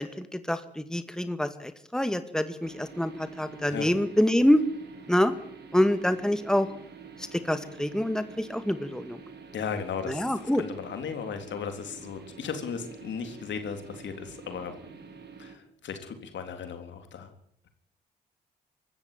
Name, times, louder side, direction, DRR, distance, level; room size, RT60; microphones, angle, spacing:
voice 1, 0.0-4.6 5.1-5.3 5.7-6.7 7.3-9.2 10.1-10.6, left 1 dB, 5° left, 10 dB, 2.1 m, -26 dB
sound 1, 2.6-15.6, right 5 dB, 55° right, 4.6 m, -47 dB
voice 2, 9.5-14.8 15.4-17.3, left 6 dB, 65° left, 7 dB, 3.5 m, -36 dB
24.5 x 13.5 x 9.2 m, 0.68 s
hypercardioid pair, 40°, 21 cm